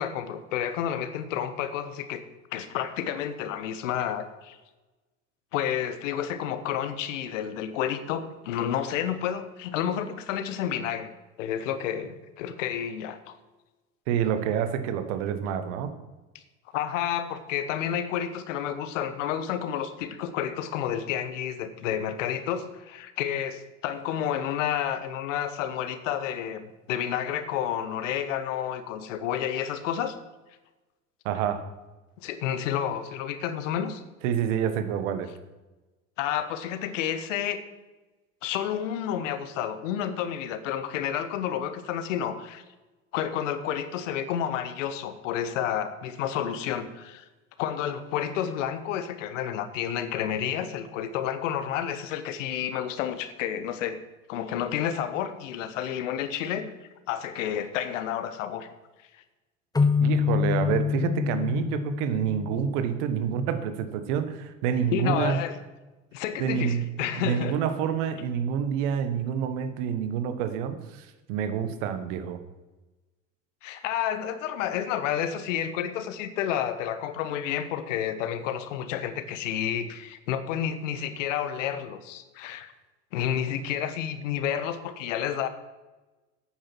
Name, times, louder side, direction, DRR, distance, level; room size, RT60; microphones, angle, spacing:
voice 1, 0.0-2.2 2.5-4.6 5.5-11.1 11.4-13.3 16.7-30.2 32.2-34.0 36.2-37.6 38.4-42.6 43.1-47.2 47.6-54.0 54.3-56.7 57.1-58.7 64.9-65.6 66.1-67.6 73.6-82.7 83.1-85.5, left 9 dB, 75° left, 11 dB, 1.1 m, -30 dB
voice 2, 14.1-15.9 31.2-31.6 34.2-35.3 60.0-65.4 66.4-66.9 67.2-72.4, right 8 dB, 70° right, 10 dB, 1.3 m, -28 dB
sound 1, 59.8-63.3, left 6 dB, 10° left, 0.7 m, -26 dB
9.2 x 8.8 x 6.1 m, 1.1 s
hypercardioid pair, 75°, 38 cm